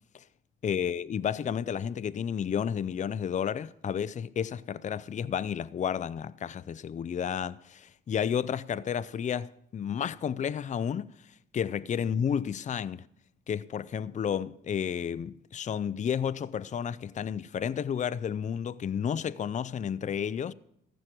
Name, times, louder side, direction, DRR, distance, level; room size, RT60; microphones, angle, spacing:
voice 1, 0.6-11.1 11.5-13.1 13.5-20.5, left 8 dB, 35° left, 0.5 m, -31 dB
14.5 x 6.5 x 9.0 m
cardioid pair, 90°, 20 cm